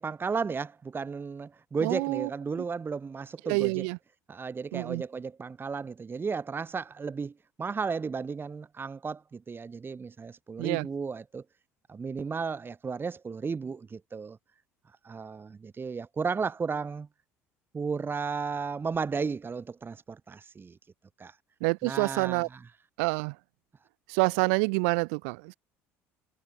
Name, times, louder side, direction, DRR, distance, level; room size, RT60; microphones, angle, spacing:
voice 1, 0.0-3.8 4.3-7.3 7.6-11.4 11.9-14.4 15.0-17.1 17.7-20.8 21.2-21.4 21.8-22.6, right 5 dB, 30° right, 1.8 m, -34 dB
voice 2, 1.8-2.3 3.4-4.0 4.7-5.0 10.6-10.9 21.6-22.5 23.0-23.3 24.1-25.5, right 36 dB, 70° right, 1.1 m, -27 dB
hypercardioid pair, 60°, 8 cm